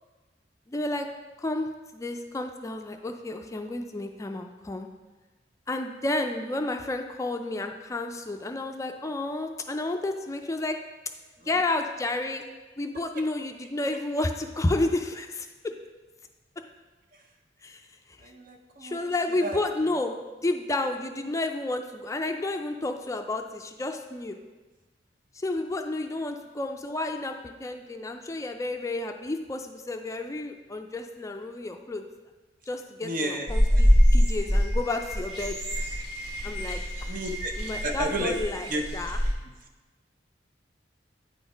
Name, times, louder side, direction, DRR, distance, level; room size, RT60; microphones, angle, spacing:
voice 1, 0.7-1.1 1.4-1.7 1.9-4.9 5.7-10.8 11.5-12.4 12.8-15.7 17.6-17.8 18.1-18.3 18.8-24.4 25.3-32.0 32.7-35.9 36.4-37.2 37.6-39.2, left 2 dB, 20° left, 5 dB, 0.4 m, -31 dB
voice 2, 18.2-19.6 20.0-20.2 33.0-33.5 33.7-33.8 36.4-36.7 37.0-37.5 37.8-38.4 38.7-38.8, right 1 dB, 50° right, 3 dB, 0.9 m, -33 dB
sound 1, 33.5-39.3, equal, 35° right, 1.7 m, -24 dB
9.2 x 4.1 x 5.0 m, 1.2 s
head